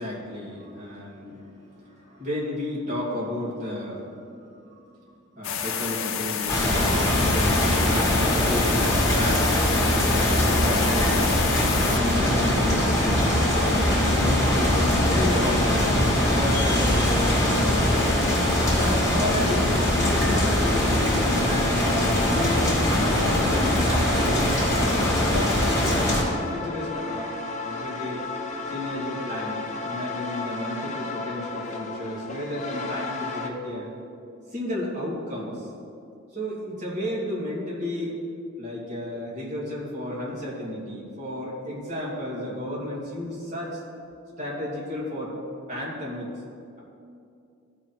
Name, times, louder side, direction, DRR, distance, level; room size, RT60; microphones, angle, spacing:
voice 1, 0.0-4.8 5.3-9.8 10.1-15.9 16.3-18.0 18.5-21.9 22.3-22.8 23.1-25.6 26.2-27.3 27.6-28.3 28.7-33.9 34.5-35.7 36.3-38.2 38.6-43.8 44.4-45.3 45.7-46.3, left 1 dB, 35° right, -7 dB, 2.5 m, -32 dB
sound 1, 5.4-12.0, left 8 dB, 70° left, 0.6 m, -30 dB
sound 2, 6.5-26.2, left 1 dB, 15° left, 1.9 m, -22 dB
sound 3, 21.6-33.5, left 3 dB, 35° left, 0.7 m, -34 dB
14.5 x 5.0 x 4.4 m, 2.5 s
head